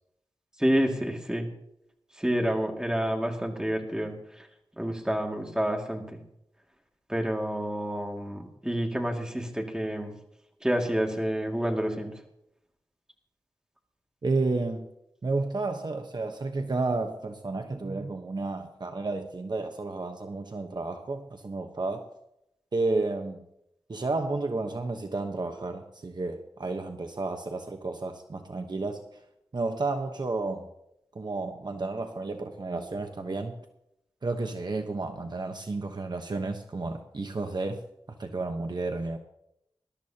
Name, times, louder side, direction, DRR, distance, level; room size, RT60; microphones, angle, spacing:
voice 1, 0.6-1.5 2.2-4.1 4.8-6.0 7.1-10.1 10.6-12.1, equal, 10° right, 1 dB, 2.3 m, -28 dB
voice 2, 14.2-14.9 15.2-22.1 22.7-23.4 23.9-29.0 29.5-30.6 31.1-33.5 34.2-37.8 38.2-39.2, right 3 dB, 50° right, 5 dB, 1.0 m, -31 dB
20.5 x 12.5 x 2.9 m, 0.79 s
wide cardioid pair, 100°, 10 cm